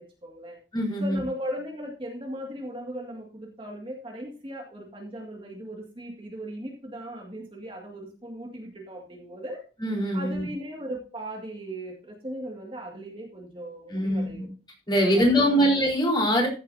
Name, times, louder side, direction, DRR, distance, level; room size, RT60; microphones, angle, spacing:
voice 1, 0.0-0.6 1.0-9.6 10.1-14.5 15.1-15.7, right 1 dB, 30° right, 0 dB, 2.0 m, -38 dB
voice 2, 0.7-1.2 9.8-10.5 13.9-14.5 14.9-16.5, equal, 25° left, -2 dB, 4.2 m, -23 dB
14.5 x 8.2 x 2.7 m, 0.34 s
head